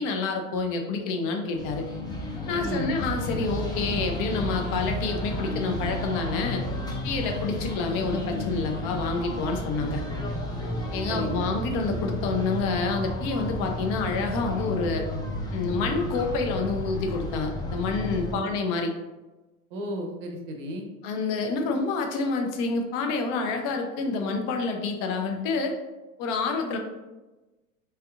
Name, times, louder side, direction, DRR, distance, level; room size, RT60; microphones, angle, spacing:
voice 1, 0.0-1.8 2.5-6.6 7.0-10.0 10.9-15.0 15.5-18.9 21.0-25.8 26.2-26.8, left 4 dB, 50° left, 3 dB, 0.7 m, -28 dB
sound 1, 1.5-18.3, left 1 dB, 10° left, 0.3 m, -32 dB
voice 2, 2.5-2.9 11.1-11.5 18.3-18.4 19.7-20.9, equal, 65° right, 2 dB, 0.7 m, -33 dB
3.3 x 2.7 x 2.4 m, 1.1 s
hypercardioid pair, 80°, 42 cm